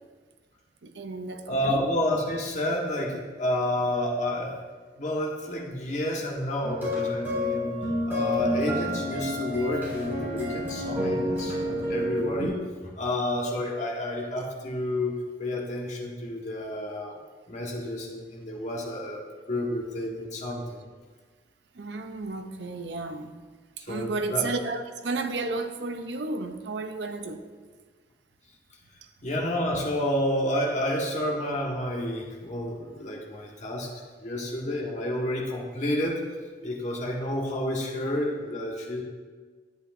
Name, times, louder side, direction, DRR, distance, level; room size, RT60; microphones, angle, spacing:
voice 1, 0.8-1.8 21.7-23.3 23.8-27.4, right 3 dB, 70° right, 7 dB, 0.6 m, -32 dB
voice 2, 1.5-4.5 4.9-7.7 8.1-17.2 17.5-19.2 19.5-20.9 23.8-24.5 29.2-33.9 34.2-36.2 36.6-39.0, left 1 dB, 40° left, -1 dB, 1.3 m, -30 dB
sound 1, 6.6-12.5, left 1 dB, 10° right, 2.6 m, -29 dB
10.5 x 8.1 x 2.6 m, 1.5 s
head